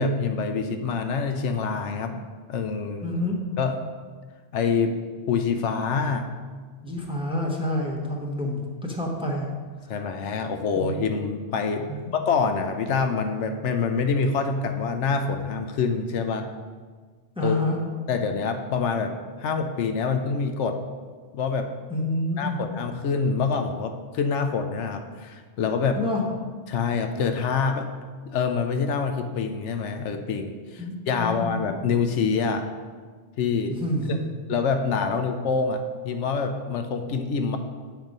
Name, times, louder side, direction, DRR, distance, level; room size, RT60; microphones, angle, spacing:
voice 1, 0.0-3.1 3.6-3.9 4.5-5.0 5.3-6.3 9.9-16.5 17.4-17.6 18.1-20.8 21.3-21.7 22.4-26.0 26.7-27.9 28.2-32.6 33.4-33.8 34.1-34.2 34.5-37.6, left 5 dB, 75° left, 6 dB, 0.9 m, -26 dB
voice 2, 3.0-3.4 6.8-9.5 10.7-11.1 11.9-12.1 17.4-17.8 21.9-22.6 26.0-26.2 30.8-31.6 33.7-34.4, left 1 dB, 5° right, -1 dB, 0.8 m, -28 dB
7.5 x 4.5 x 5.3 m, 1.5 s
omnidirectional pair, 1.2 m